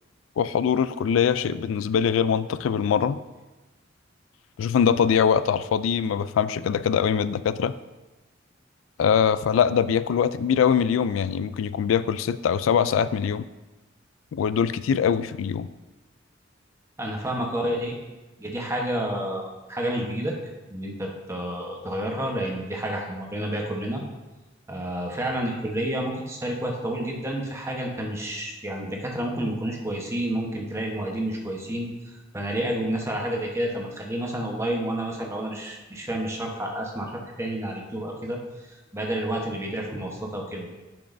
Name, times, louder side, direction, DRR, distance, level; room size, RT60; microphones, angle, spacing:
voice 1, 0.4-3.2 4.6-7.7 9.0-13.5 14.3-15.7, left 7 dB, 80° left, 15 dB, 0.3 m, -23 dB
voice 2, 17.0-18.0 18.4-20.3 20.7-24.0 24.7-37.1 37.4-38.4 38.7-40.7, right 1 dB, 15° right, 0 dB, 1.0 m, -30 dB
10.0 x 6.2 x 2.6 m, 1.1 s
head